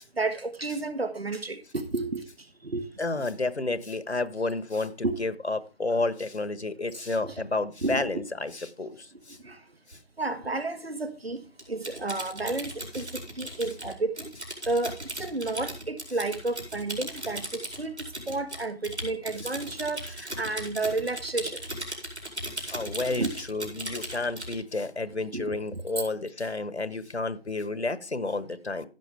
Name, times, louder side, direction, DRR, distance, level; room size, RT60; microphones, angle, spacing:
voice 1, 0.2-2.3 2.6-2.9 3.2-3.3 5.0-5.2 7.2-7.4 7.8-8.2 9.4-9.6 10.2-14.3 14.6-21.6 23.2-23.3 25.3-25.8, right 3 dB, 65° right, 11 dB, 1.4 m, -31 dB
voice 2, 3.0-9.4 9.9-10.0 22.6-28.8, left 3 dB, 80° left, 14 dB, 1.4 m, -31 dB
Typing, 11.6-24.6, right 1 dB, 85° right, 4.9 m, -37 dB
15.0 x 6.3 x 3.3 m, 0.32 s
figure-of-eight pair, 165°, 33 cm